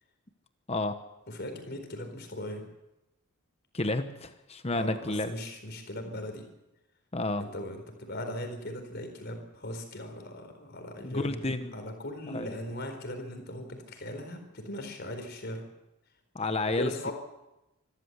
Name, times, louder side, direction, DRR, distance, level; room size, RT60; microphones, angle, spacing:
voice 1, 1.3-2.6 4.7-6.5 7.4-15.6 16.8-17.1, left 1 dB, 50° left, 5 dB, 4.4 m, -38 dB
voice 2, 3.7-5.3 7.1-7.4 11.0-11.8 12.3-12.5 16.3-16.9, left 2 dB, 30° left, 9 dB, 1.1 m, -31 dB
25.5 x 13.5 x 8.1 m, 0.96 s
head